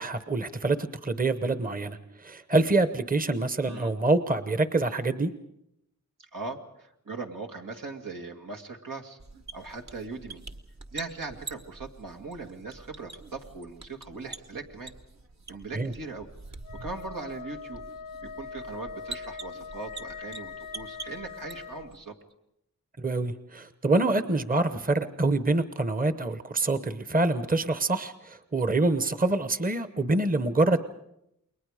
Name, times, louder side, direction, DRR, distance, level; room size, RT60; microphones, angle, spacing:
voice 1, 0.0-5.3 15.7-15.9 23.0-30.8, right 2 dB, 25° right, 11 dB, 0.9 m, -26 dB
voice 2, 6.2-9.2 9.5-10.4 10.9-14.9 15.5-16.3 16.8-17.8 18.2-22.1, right 3 dB, 85° right, 2 dB, 2.1 m, -39 dB
sound 1, 9.2-22.0, right 3 dB, 55° right, 1.3 m, -46 dB
Wind instrument woodwind instrument, 16.6-21.9, left 6 dB, 90° left, 0.7 m, -42 dB
29.0 x 22.0 x 5.0 m, 0.79 s
wide cardioid pair, 80°, 32 cm